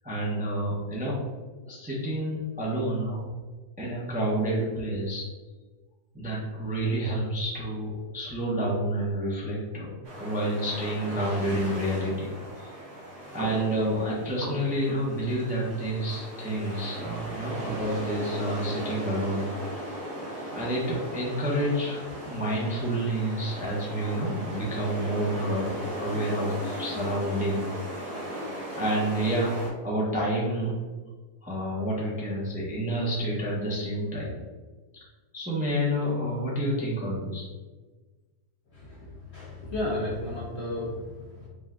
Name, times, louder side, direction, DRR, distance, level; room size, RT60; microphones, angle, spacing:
voice 1, 0.0-1.2 1.7-3.2 3.8-5.2 6.1-12.3 12.6-12.7 13.3-19.5 20.5-27.7 28.7-30.8 31.4-34.4 35.3-37.4, right 1 dB, 10° right, -5 dB, 0.4 m, -29 dB
sound 1, 10.0-29.7, right 1 dB, 90° right, 1.9 m, -37 dB
voice 2, 39.3-41.5, left 1 dB, 60° left, -4 dB, 0.7 m, -33 dB
5.0 x 2.3 x 3.6 m, 1.3 s
omnidirectional pair, 1.7 m